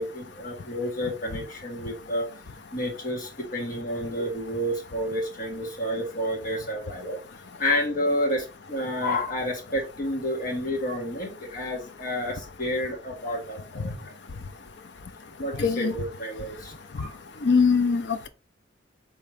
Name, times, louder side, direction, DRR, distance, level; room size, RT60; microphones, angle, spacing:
voice 1, 0.0-2.3 2.7-7.2 7.6-14.1 15.4-17.1, left 1 dB, 45° left, 1.6 m, -30 dB
voice 2, 15.6-16.0 17.4-18.3, left 5 dB, 65° left, 0.6 m, -22 dB
4.6 x 3.1 x 3.4 m
head